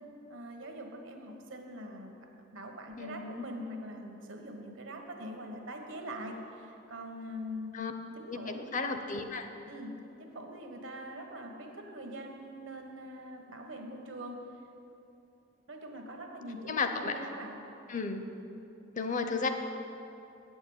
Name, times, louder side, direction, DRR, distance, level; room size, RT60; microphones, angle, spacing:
voice 1, 0.3-7.8 8.1-8.7 9.7-14.4 15.7-17.6, equal, 75° right, 3 dB, 1.3 m, -43 dB
voice 2, 3.0-3.5 7.7-7.9 8.3-9.5 16.7-17.2 17.9-18.3 18.9-19.5, left 4 dB, 40° left, 7 dB, 0.8 m, -33 dB
8.5 x 7.0 x 8.7 m, 2.9 s
head